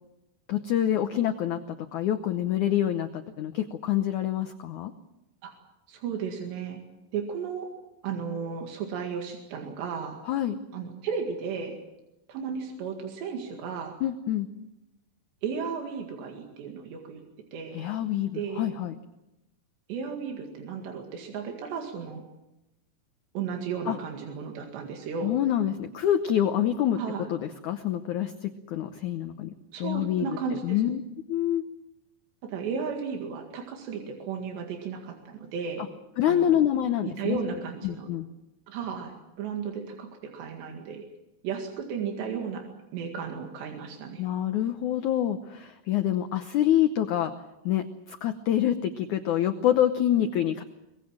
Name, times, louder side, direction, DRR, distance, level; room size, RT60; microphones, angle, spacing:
voice 1, 0.5-4.9 10.3-10.5 14.0-14.5 17.7-19.0 23.9-24.0 25.2-27.0 27.3-29.5 29.8-30.3 30.6-31.0 31.3-31.6 36.2-37.4 37.8-38.3 44.2-47.3 47.6-50.6, left 11 dB, 85° left, 8 dB, 1.7 m, -26 dB
voice 2, 5.9-6.8 7.1-7.7 8.0-10.2 10.7-11.8 12.3-14.0 15.4-17.2 17.5-17.8 18.3-18.7 19.9-22.2 23.3-25.4 27.0-27.3 29.7-30.8 32.4-35.8 36.3-36.5 37.1-38.1 38.7-41.0 41.4-42.6 42.9-44.2, right 6 dB, 90° right, 2 dB, 4.3 m, -34 dB
24.0 x 20.0 x 7.5 m, 0.95 s
omnidirectional pair, 4.8 m